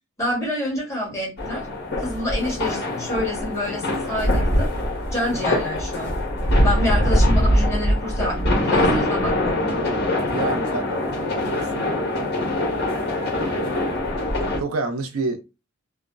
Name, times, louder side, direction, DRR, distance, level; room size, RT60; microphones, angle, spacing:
voice 1, 0.2-1.6 2.0-4.7 5.1-6.1 6.6-9.6, left 1 dB, 15° left, 1.5 m, -27 dB
sound 1, 1.4-14.6, left 1 dB, 55° left, 1.2 m, -23 dB
voice 2, 5.3-5.7 10.3-11.9 14.6-15.4, right 3 dB, 90° right, 0.6 m, -29 dB
3.3 x 2.1 x 2.5 m
head